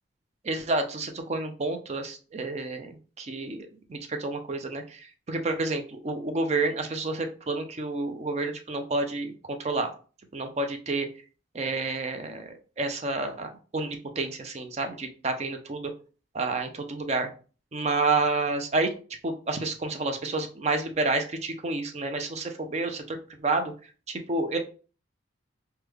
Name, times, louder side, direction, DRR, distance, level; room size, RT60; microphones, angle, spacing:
voice 1, 0.4-2.9 3.2-9.9 10.3-11.1 11.5-15.9 16.3-17.3 17.7-23.7 24.1-24.6, right 3 dB, 35° right, 6 dB, 0.4 m, -29 dB
3.1 x 2.2 x 3.4 m, 0.37 s
head